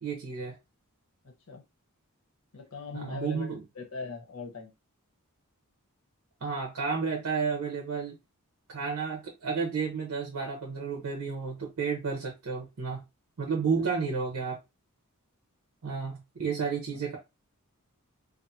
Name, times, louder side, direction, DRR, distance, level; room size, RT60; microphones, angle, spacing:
voice 1, 0.0-0.6 2.9-3.6 6.4-8.1 8.7-13.0 13.4-14.6 15.8-17.2, right 5 dB, 85° right, 0.7 m, -31 dB
voice 2, 2.5-4.7 16.9-17.0, left 4 dB, 70° left, 0.8 m, -40 dB
2.5 x 2.4 x 2.7 m
head